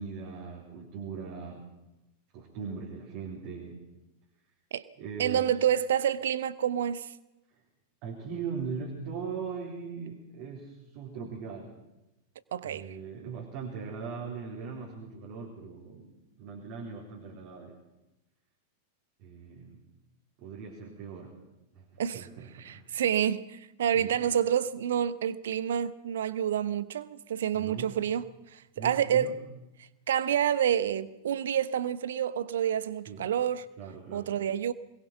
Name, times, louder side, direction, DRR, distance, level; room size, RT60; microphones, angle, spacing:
voice 1, 0.0-1.6 2.3-3.8 5.0-5.5 8.0-11.7 12.6-17.8 19.2-19.8 20.4-21.4 21.7-21.9 22.1-22.8 23.9-24.2 27.5-28.0 28.8-29.4 33.1-33.3 33.8-34.3, right 5 dB, 45° right, 4.1 m, -40 dB
voice 2, 5.2-7.1 12.5-12.9 22.0-22.3 22.6-28.3 28.5-29.4 30.1-33.7 34.1-34.7, right 9 dB, 60° right, 1.0 m, -28 dB
23.5 x 21.5 x 5.8 m
figure-of-eight pair, 90°, 0 cm